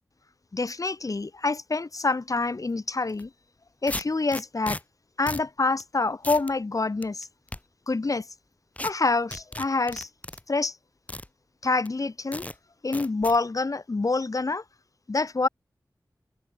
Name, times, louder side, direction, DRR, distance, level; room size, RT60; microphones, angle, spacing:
voice 1, 0.5-3.3 3.8-4.8 5.2-7.3 7.9-8.2 8.8-10.1 10.5-10.8 11.6-12.4 12.8-14.6 15.1-15.5, left 3 dB, 55° left, 3.1 m, -26 dB
sound 1, 3.1-3.2 3.9-4.8 5.3-5.5 5.8-5.9 6.2-6.5 7.0-7.6 8.8-8.9 9.3-10.4 11.1-11.3 11.8-11.9 12.3-12.5 12.9-13.4, left 1 dB, 20° left, 4.8 m, -35 dB
wide cardioid pair, 80°, 7 cm